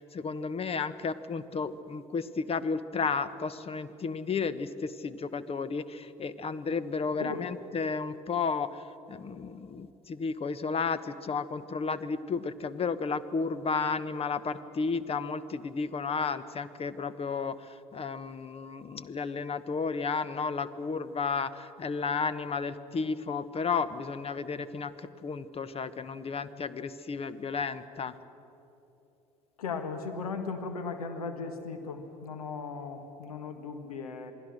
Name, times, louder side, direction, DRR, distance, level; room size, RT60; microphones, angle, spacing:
voice 1, 0.1-8.7 9.1-17.6 17.9-21.5 21.8-24.9 25.2-28.1, left 5 dB, 30° left, 14 dB, 1.2 m, -32 dB
voice 2, 7.0-7.6 29.6-34.3, left 4 dB, 85° left, 6 dB, 1.6 m, -37 dB
27.5 x 19.5 x 6.5 m, 2.9 s
hypercardioid pair, 60°, 18 cm